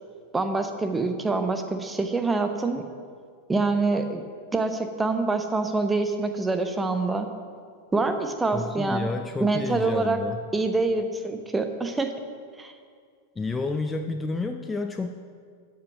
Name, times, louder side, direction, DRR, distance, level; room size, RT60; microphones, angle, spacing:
voice 1, 0.3-2.8 3.5-4.2 4.5-7.3 7.9-9.1 9.4-10.2 10.5-12.1 12.6-12.7, right 3 dB, 10° right, 7 dB, 0.8 m, -25 dB
voice 2, 8.5-10.4 13.4-15.1, left 3 dB, 15° left, 6 dB, 0.4 m, -30 dB
13.0 x 5.4 x 5.7 m, 2.1 s
figure-of-eight pair, 90°, 0 cm